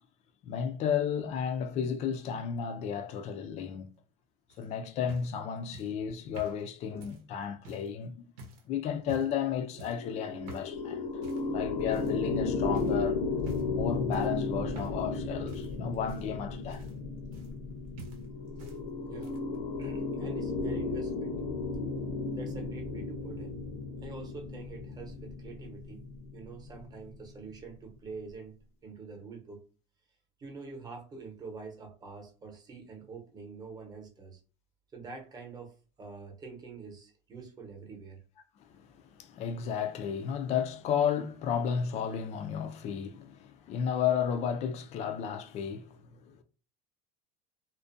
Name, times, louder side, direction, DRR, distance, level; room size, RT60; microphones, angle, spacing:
voice 1, 0.4-3.9 4.6-8.3 8.7-11.0 11.5-13.3 13.7-16.9 38.6-46.4, left 7 dB, 40° left, 0.4 m, -33 dB
sound 1, 4.5-7.9 8.4-8.7 9.0-9.4 9.8-10.1 10.5-10.8 11.2-11.5 11.9-12.4 12.7-13.0 13.4-13.8 14.1-15.2 15.5-17.7 18.0-18.8 19.1-19.6 20.5-20.6, right 2 dB, 75° right, 0.8 m, -48 dB
sound 2, 9.7-27.2, left 3 dB, 80° left, 0.7 m, -34 dB
voice 2, 19.8-21.4 22.3-23.6 24.0-26.0 26.3-28.5 28.8-29.6 30.4-34.4 34.9-35.7 36.0-38.2, right 4 dB, 20° right, 0.8 m, -46 dB
2.4 x 2.1 x 2.5 m
supercardioid pair, 130°, 18 cm